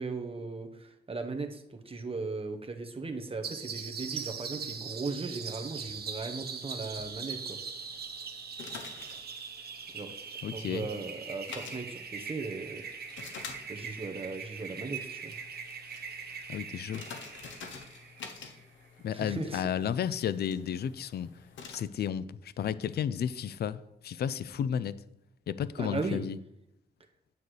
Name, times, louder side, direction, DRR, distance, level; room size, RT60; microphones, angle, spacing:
voice 1, 0.0-7.6 9.9-12.8 13.7-15.3 19.1-19.6 25.8-26.2, right 3 dB, 30° right, 6 dB, 1.1 m, -37 dB
sound 1, 3.4-18.6, right 6 dB, 60° right, 1.0 m, -41 dB
sound 2, 3.9-21.8, left 5 dB, 90° left, 0.9 m, -50 dB
voice 2, 10.4-10.9 16.5-17.0 19.0-21.3 21.7-25.0 25.5-26.4, left 8 dB, 60° left, 17 dB, 0.4 m, -33 dB
9.4 x 7.7 x 3.3 m, 0.84 s
cardioid pair, 75°, 19 cm